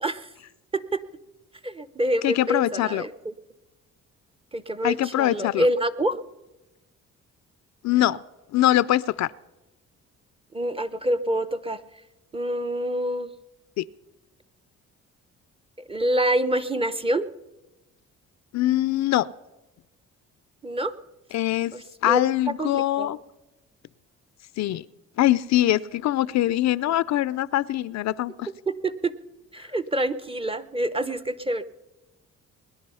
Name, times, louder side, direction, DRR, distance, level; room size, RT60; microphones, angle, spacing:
voice 1, 1.6-3.3 4.5-6.2 10.5-11.8 12.3-13.3 15.9-17.3 20.6-20.9 21.7-22.2 22.6-23.2 28.7-29.1 29.5-31.6, right 1 dB, 20° right, 12 dB, 0.7 m, -26 dB
voice 2, 2.2-3.1 4.8-5.7 7.8-8.2 8.5-9.3 13.8-13.9 18.5-19.3 21.3-21.7 22.0-23.2 24.6-24.9 25.2-28.5, left 14 dB, 65° left, 19 dB, 0.5 m, -23 dB
21.0 x 10.5 x 5.5 m, 1.0 s
cardioid pair, 90°, 30 cm